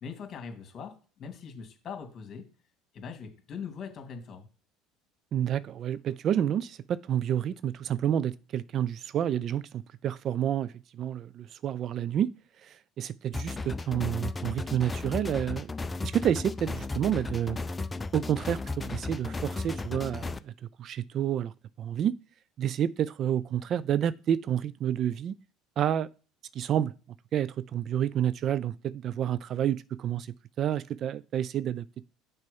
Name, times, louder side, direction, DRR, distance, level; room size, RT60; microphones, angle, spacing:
voice 1, 0.0-2.5 2.9-4.5, left 6 dB, 40° left, 2.5 m, -41 dB
voice 2, 5.3-12.3 12.6-15.7 16.0-17.6 18.1-20.5 20.8-21.5 21.8-22.1 22.6-25.4 25.8-26.1 26.5-26.9 27.3-30.3 30.6-31.8, right 10 dB, 50° right, 0.4 m, -29 dB
sound 1, 13.3-20.4, left 3 dB, 20° left, 0.5 m, -35 dB
6.6 x 4.3 x 5.4 m
supercardioid pair, 85°, 0 cm